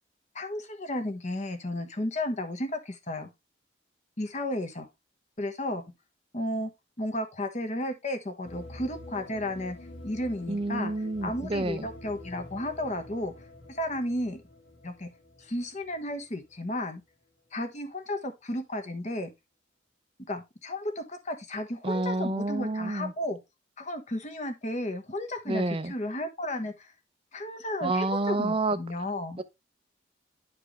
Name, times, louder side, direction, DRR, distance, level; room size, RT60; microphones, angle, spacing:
voice 1, 0.3-3.3 4.2-4.9 5.4-5.8 6.3-6.7 7.0-9.8 10.0-10.9 11.2-13.3 13.7-14.4 14.8-15.1 15.4-17.0 17.5-19.3 20.3-23.4 23.8-26.9 27.3-29.4, left 1 dB, 35° left, 1.2 m, -33 dB
sound 1, 8.4-16.7, left 1 dB, 65° left, 2.0 m, -47 dB
voice 2, 10.5-11.9 21.8-23.1 25.5-25.9 27.8-28.8 29.4-29.5, right 2 dB, 30° right, 0.6 m, -29 dB
10.5 x 4.6 x 3.2 m
head